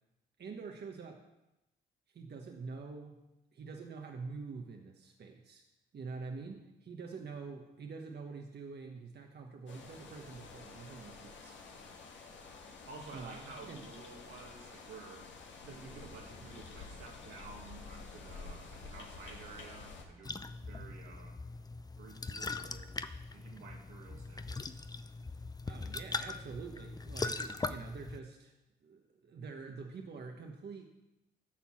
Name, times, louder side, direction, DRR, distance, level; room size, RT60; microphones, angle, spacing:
voice 1, 0.4-1.2 2.1-3.2 3.5-5.6 5.9-11.6 13.1-13.9 20.7-20.8 24.1-24.3 25.7-28.5 28.8-30.8, right 4 dB, 55° right, 2 dB, 1.2 m, -46 dB
sound 1, 9.7-20.0, left 4 dB, 60° left, 1.8 m, -50 dB
voice 2, 12.9-15.3 15.6-21.4 22.0-22.9 23.3-24.8, right 4 dB, 80° right, -1 dB, 2.0 m, -52 dB
sound 2, 20.2-28.2, left 3 dB, 20° left, 0.6 m, -41 dB
11.5 x 4.5 x 7.3 m, 0.96 s
supercardioid pair, 60°, 21 cm